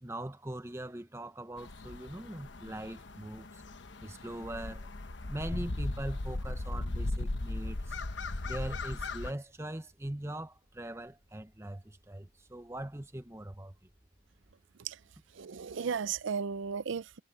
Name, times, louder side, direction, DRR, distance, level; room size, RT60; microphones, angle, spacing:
voice 1, 0.0-3.6 4.0-4.9 5.3-8.0 8.4-13.7, right 1 dB, 15° right, 0.8 m, -41 dB
sound 1, 1.0-14.5, equal, 50° right, 7.6 m, -70 dB
sound 2, 1.6-9.3, left 2 dB, 70° left, 1.0 m, -37 dB
voice 2, 15.3-17.2, right 6 dB, 85° right, 0.5 m, -35 dB
head